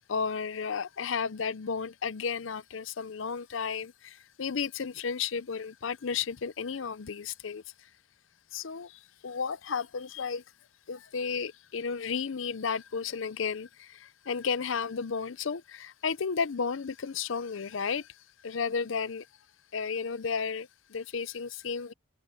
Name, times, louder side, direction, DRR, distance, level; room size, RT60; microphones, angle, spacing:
voice 1, 0.1-7.6 8.5-10.4 10.9-18.1 18.4-19.3 19.7-21.9, left 6 dB, 75° left, 0.6 m, -33 dB
head